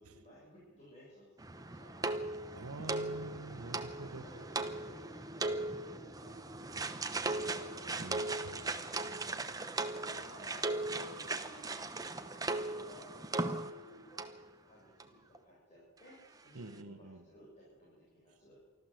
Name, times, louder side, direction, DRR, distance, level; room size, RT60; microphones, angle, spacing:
voice 1, 0.0-2.1 2.7-2.9 4.0-8.3 9.2-9.7 10.0-14.2 14.6-18.6, equal, 30° left, -7 dB, 7.8 m, -58 dB
sound 1, 1.4-13.9 14.2-14.4 15.0-15.1 15.3-15.4, right 2 dB, 15° right, 1.0 m, -38 dB
voice 2, 2.5-4.3 8.0-8.6 16.5-17.2, right 2 dB, 85° right, 11 dB, 1.1 m, -46 dB
24.5 x 14.5 x 7.8 m, 1.3 s
head